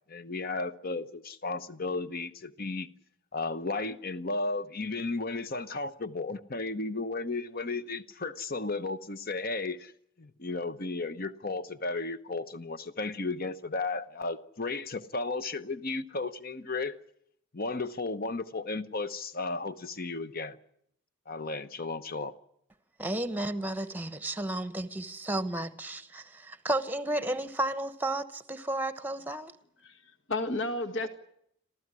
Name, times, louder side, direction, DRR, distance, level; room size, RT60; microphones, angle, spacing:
voice 1, 0.1-2.9 3.3-9.9 10.2-16.9 17.5-20.6 21.3-22.3, left 3 dB, 45° left, 1.0 m, -34 dB
voice 2, 23.0-29.5, right 1 dB, 10° right, 1.0 m, -33 dB
voice 3, 29.8-31.1, left 2 dB, 60° left, 1.8 m, -32 dB
27.0 x 15.0 x 9.7 m
head